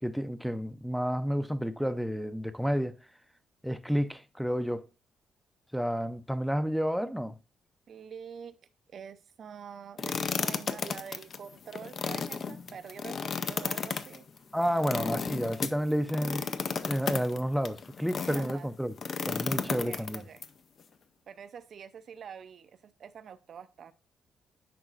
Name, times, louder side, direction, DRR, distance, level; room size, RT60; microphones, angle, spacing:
voice 1, 0.0-3.0 3.6-4.9 5.7-7.4 14.5-16.4 16.9-18.9 19.3-20.2, equal, ahead, 0.5 m, -30 dB
voice 2, 7.9-8.6 8.9-14.3 16.4-16.5 18.3-18.7 19.7-20.5 21.3-23.9, right 7 dB, 55° right, 0.4 m, -46 dB
sound 1, 10.0-18.5 19.0-20.5, left 5 dB, 50° left, 0.5 m, -34 dB
10.0 x 4.0 x 2.4 m
cardioid pair, 90°, 0 cm